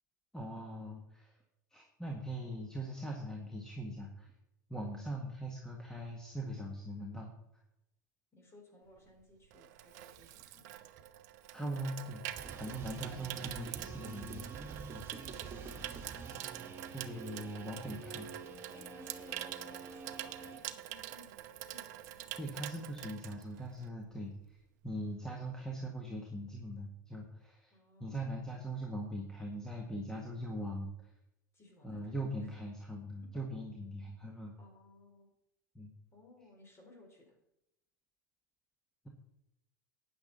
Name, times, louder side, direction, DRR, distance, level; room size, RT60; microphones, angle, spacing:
voice 1, 0.3-1.3 1.7-4.3 4.7-7.3 11.5-12.2 12.6-14.5 14.9-15.0 16.9-18.3 22.4-24.3 24.8-27.7 28.0-30.9 31.8-34.6 35.7-35.9, right 1 dB, 5° left, 0 dB, 1.7 m, -41 dB
voice 2, 8.3-10.7 15.1-16.4 18.7-21.4 21.7-22.4 27.7-28.8 31.5-32.2 33.2-33.3 34.6-35.3 36.1-37.4, left 2 dB, 25° left, 2 dB, 4.3 m, -60 dB
Water tap faucet / Sink (filling or washing), 9.0-24.0 24.3-24.6, right 13 dB, 55° right, 0.8 m, -46 dB
sound 1, 12.3-20.6, right 4 dB, 25° right, 2.0 m, -48 dB
12.5 x 9.3 x 4.1 m, 0.85 s
figure-of-eight pair, 85°, 10 cm